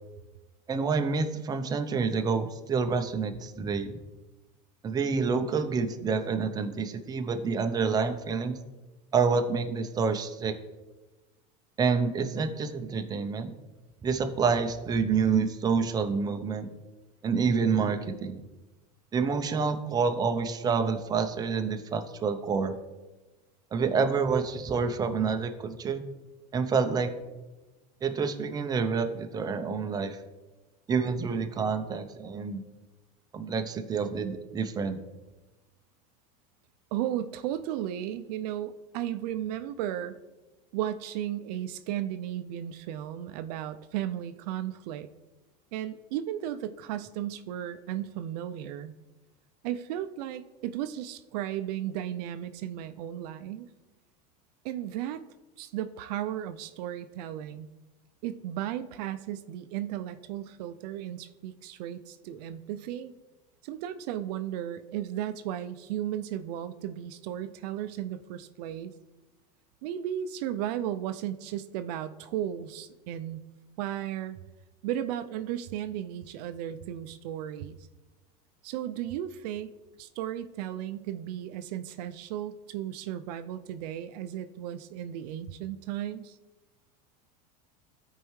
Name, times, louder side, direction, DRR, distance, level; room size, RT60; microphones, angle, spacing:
voice 1, 0.7-3.9 4.8-8.6 9.1-10.5 11.8-13.5 14.0-16.7 17.2-18.4 19.1-22.7 23.7-26.0 26.5-27.1 28.0-30.2 30.9-32.6 33.3-35.0, right 5 dB, 20° right, 6 dB, 0.6 m, -28 dB
voice 2, 36.9-40.2 40.7-45.1 45.7-48.9 49.6-53.7 54.6-55.2 55.6-57.7 58.2-63.1 63.6-68.9 69.8-73.4 73.8-74.4 74.8-77.8 78.6-79.7 80.0-86.4, right 11 dB, 70° right, 11 dB, 0.5 m, -35 dB
13.5 x 4.6 x 3.1 m, 1.1 s
supercardioid pair, 130°, 21 cm